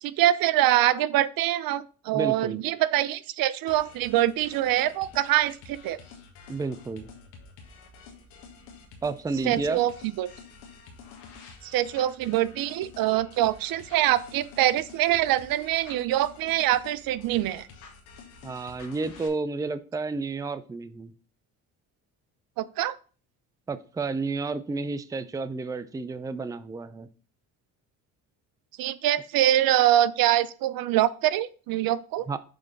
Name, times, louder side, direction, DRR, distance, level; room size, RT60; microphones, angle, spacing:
voice 1, 0.0-6.0 9.4-9.9 10.2-10.3 11.6-17.7 22.6-22.9 28.8-32.3, right 13 dB, 60° right, 0.5 m, -24 dB
voice 2, 2.1-2.6 6.5-7.1 9.0-9.8 18.4-21.1 23.7-27.1 32.3-32.4, right 3 dB, 10° right, 0.4 m, -31 dB
sound 1, 3.7-19.3, left 5 dB, 85° left, 1.6 m, -49 dB
6.9 x 3.4 x 5.2 m
supercardioid pair, 70°, 39 cm